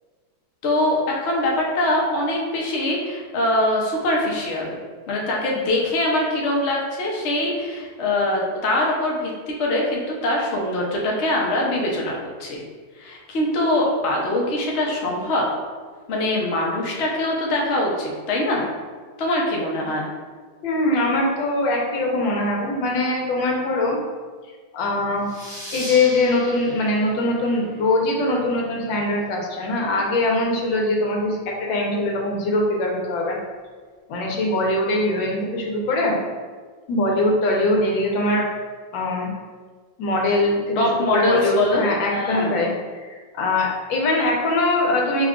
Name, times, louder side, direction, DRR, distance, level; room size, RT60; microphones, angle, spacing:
voice 1, 0.6-4.8 5.1-12.6 13.0-15.5 16.1-18.6 19.2-20.1 40.8-41.8 42.1-42.6, left 1 dB, 55° left, -2 dB, 0.8 m, -23 dB
voice 2, 20.6-24.0 24.7-25.3 25.7-33.4 34.1-36.2 36.9-38.4 38.9-39.3 40.0-42.7 43.1-45.3, left 2 dB, 85° left, -1 dB, 1.5 m, -22 dB
sound 1, 25.2-28.5, equal, ahead, 1.1 m, -38 dB
4.9 x 2.3 x 3.6 m, 1.5 s
omnidirectional pair, 2.0 m